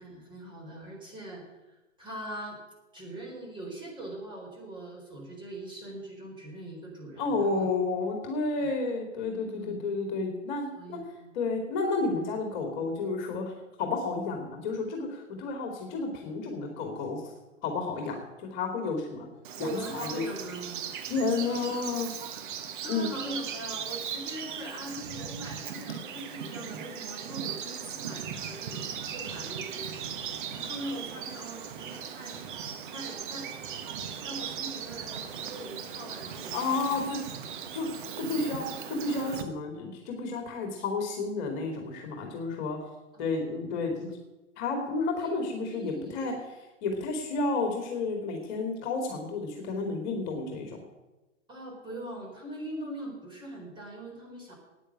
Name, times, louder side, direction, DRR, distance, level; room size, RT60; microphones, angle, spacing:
voice 1, 0.0-1.4 2.0-2.6 2.9-7.7 8.6-8.7 9.5-9.8 10.7-11.3 19.5-20.8 21.5-21.6 22.8-29.9 30.3-32.3 32.8-33.5 34.2-37.0 37.5-37.6 38.2-38.5 43.1-43.2 45.2-45.3 45.6-46.4 51.5-54.5, right 1 dB, 10° right, -1 dB, 4.3 m, -41 dB
voice 2, 7.2-11.0 11.3-13.5 13.8-17.2 17.6-18.2 18.5-19.3 19.6-20.2 21.1-22.1 22.9-23.1 36.5-37.2 37.7-37.9 38.2-42.8 43.2-44.1 44.6-50.8, left 3 dB, 35° left, 3 dB, 2.5 m, -31 dB
Bird vocalization bird call bird song, 19.4-39.4, right 8 dB, 40° right, 1.3 m, -38 dB
10.0 x 9.3 x 8.9 m, 1.0 s
figure-of-eight pair, 115°, 38 cm